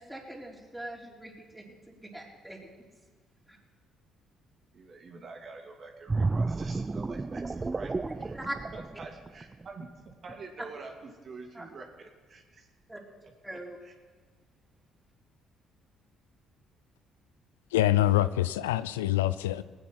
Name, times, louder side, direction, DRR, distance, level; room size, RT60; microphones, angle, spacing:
voice 1, 0.0-2.6 3.5-3.6 8.0-8.6 11.5-11.7 12.9-13.0 13.4-13.8, right 1 dB, 5° right, 4.2 m, -41 dB
voice 2, 4.7-7.9 8.2-8.4 8.7-12.7 13.5-13.9, right 4 dB, 50° right, 2.6 m, -46 dB
sound 1, 6.1-9.7 10.1-10.3, right 3 dB, 25° right, 0.4 m, -32 dB
voice 3, 17.7-19.6, left 14 dB, 90° left, 0.4 m, -25 dB
19.5 x 9.5 x 4.8 m
hypercardioid pair, 55°, 0 cm